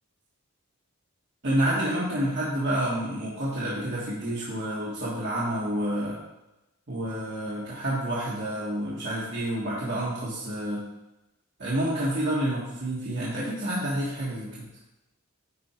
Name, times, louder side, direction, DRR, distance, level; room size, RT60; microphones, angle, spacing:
voice 1, 1.4-6.2 6.9-10.8 11.6-14.5, right 1 dB, 50° right, -7 dB, 1.7 m, -29 dB
10.5 x 4.5 x 4.5 m, 0.97 s
head